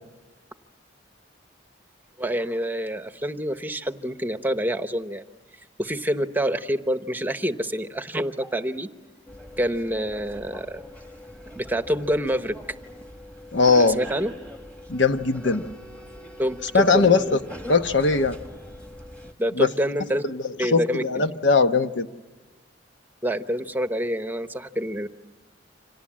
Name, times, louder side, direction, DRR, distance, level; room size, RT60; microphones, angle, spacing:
voice 1, 2.2-5.2 5.8-8.9 9.6-10.8 11.5-12.5 13.7-14.3 16.4-17.4 19.4-20.2 20.6-21.2 23.2-25.1, equal, 10° right, 9 dB, 0.9 m, -27 dB
sound 1, 9.3-19.3, equal, 10° left, 1.6 m, -42 dB
voice 2, 13.5-14.0 14.9-15.6 16.7-17.4 17.7-18.4 19.6-19.7 20.3-22.1, left 4 dB, 75° left, 8 dB, 1.1 m, -20 dB
29.5 x 26.5 x 7.5 m, 1.3 s
head